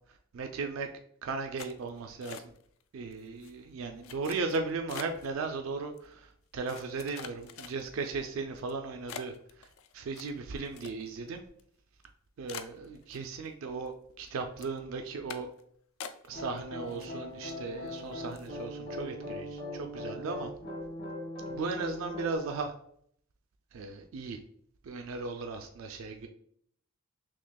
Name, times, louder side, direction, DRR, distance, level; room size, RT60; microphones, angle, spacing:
voice 1, 0.3-0.9 1.2-2.5 2.9-9.3 9.6-9.7 9.9-11.4 12.4-15.5 16.3-20.5 21.5-22.7 23.7-24.4 24.8-26.3, right 4 dB, 70° right, 5 dB, 0.4 m, -36 dB
sound 1, 1.6-2.8 3.1-3.5 4.0-5.3 6.0-6.1 6.7-8.1 8.6-8.7 9.1-11.3 11.6-11.7 12.0-12.1 12.5-13.5 13.9-14.3 14.6-14.8 15.3-15.6 16.0-16.6 16.9-17.5 17.9-18.0 18.3-18.6, left 7 dB, 75° left, 0.3 m, -45 dB
sound 2, 16.3-22.4, left 1 dB, 55° left, 1.5 m, -40 dB
6.0 x 2.3 x 2.2 m, 0.65 s
head